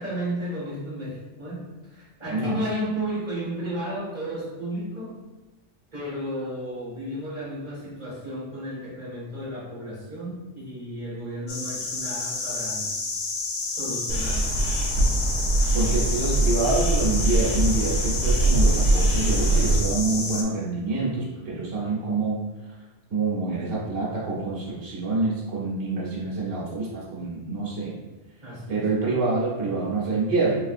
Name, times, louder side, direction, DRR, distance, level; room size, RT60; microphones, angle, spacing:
voice 1, 0.0-5.2 5.9-12.9 13.6-14.5 28.4-28.9, equal, 40° right, -8 dB, 1.6 m, -33 dB
voice 2, 2.3-2.6 15.7-22.4 23.1-27.9 28.7-30.6, right 3 dB, 80° right, -6 dB, 1.2 m, -26 dB
sound 1, 11.5-20.4, left 3 dB, 75° left, 0.3 m, -30 dB
sound 2, 14.1-19.8, right 2 dB, 60° right, 1.2 m, -22 dB
4.1 x 2.6 x 2.4 m, 1.2 s
omnidirectional pair, 1.2 m